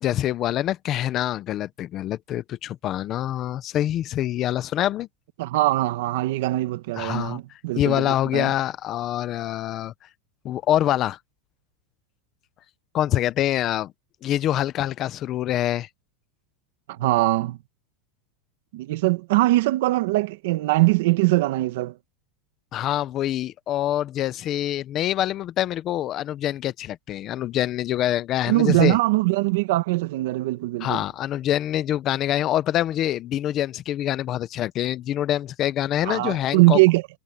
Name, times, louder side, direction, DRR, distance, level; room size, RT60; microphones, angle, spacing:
voice 1, 0.0-5.1 7.0-7.4 7.8-9.9 10.4-11.2 12.9-13.9 14.2-15.9 22.7-29.0 30.8-36.8, left 12 dB, 25° left, 0.6 m, -25 dB
voice 2, 5.4-8.5 16.9-17.6 18.7-21.9 28.5-31.0 36.0-37.0, right 19 dB, 55° right, 1.3 m, -21 dB
supercardioid pair, 180°, 0 cm